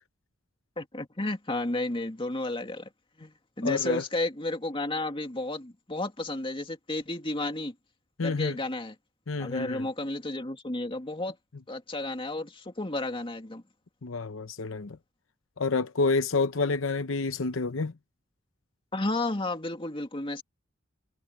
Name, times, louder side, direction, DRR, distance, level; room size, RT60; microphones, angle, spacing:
voice 1, 0.8-2.9 3.2-7.7 8.2-9.0 9.4-11.4 11.7-13.6 18.9-20.4, left 2 dB, 25° left, 2.3 m, -32 dB
voice 2, 3.6-4.0 8.2-8.6 9.3-9.8 14.0-15.0 15.6-17.9, left 4 dB, 80° left, 0.8 m, -28 dB
head